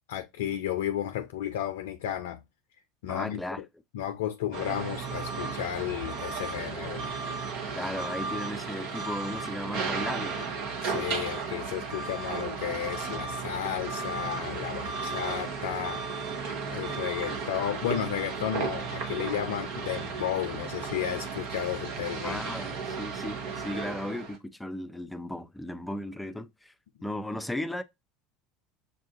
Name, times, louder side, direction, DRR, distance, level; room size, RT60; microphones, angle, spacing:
voice 1, 0.1-2.4 3.0-3.4 3.9-7.0 10.8-16.3 16.7-22.4, left 11 dB, 75° left, 0.4 m, -33 dB
voice 2, 3.1-3.6 7.7-10.6 15.3-15.4 22.2-26.7 27.0-27.8, left 1 dB, 10° left, 0.5 m, -36 dB
sound 1, 4.5-24.4, right 4 dB, 65° right, 1.1 m, -34 dB
6.5 x 2.5 x 2.5 m
hypercardioid pair, 75°, 0 cm